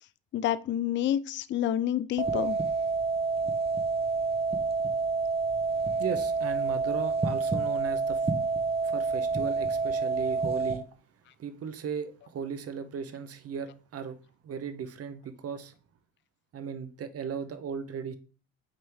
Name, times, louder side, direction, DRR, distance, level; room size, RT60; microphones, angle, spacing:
voice 1, 0.3-2.6, left 11 dB, 30° left, 0.4 m, -28 dB
sound 1, 2.2-10.8, right 4 dB, 15° right, 0.9 m, -28 dB
voice 2, 6.0-8.3 8.8-10.9 11.4-14.2 14.4-15.7 16.5-18.2, right 7 dB, 35° right, 0.9 m, -36 dB
6.4 x 4.4 x 3.5 m
supercardioid pair, 85°, 39 cm